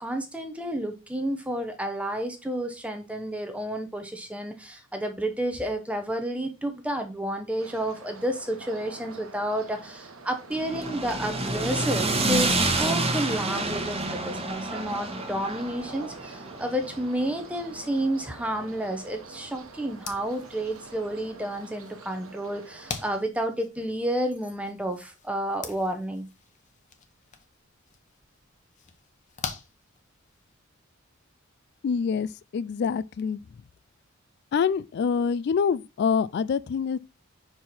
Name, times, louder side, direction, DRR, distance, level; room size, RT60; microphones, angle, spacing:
voice 1, 0.0-26.3, right 1 dB, 5° right, 0.7 m, -31 dB
sound 1, 7.6-23.2, right 4 dB, 80° right, 1.1 m, -47 dB
sound 2, 10.5-18.7, right 2 dB, 30° right, 1.2 m, -29 dB
sound 3, 19.9-30.5, left 5 dB, 35° left, 0.9 m, -44 dB
voice 2, 31.8-33.4 34.5-37.0, left 6 dB, 55° left, 0.3 m, -26 dB
5.5 x 4.7 x 4.2 m
head